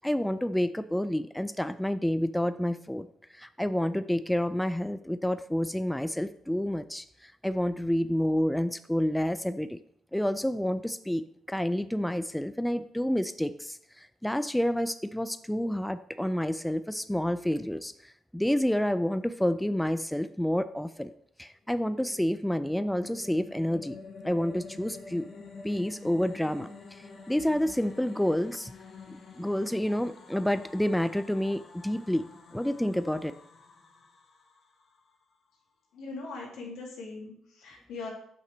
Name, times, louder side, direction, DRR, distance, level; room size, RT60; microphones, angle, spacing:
voice 1, 0.0-9.8 10.1-11.2 11.5-21.1 21.4-24.0 24.2-25.3 25.6-28.7 29.4-33.3, equal, 5° left, 12 dB, 0.3 m, -29 dB
sound 1, 22.0-35.1, left 4 dB, 50° left, 1.5 m, -48 dB
voice 2, 35.9-38.1, left 3 dB, 85° left, -2 dB, 2.6 m, -40 dB
7.6 x 5.8 x 3.3 m, 0.67 s
cardioid pair, 90°, 0 cm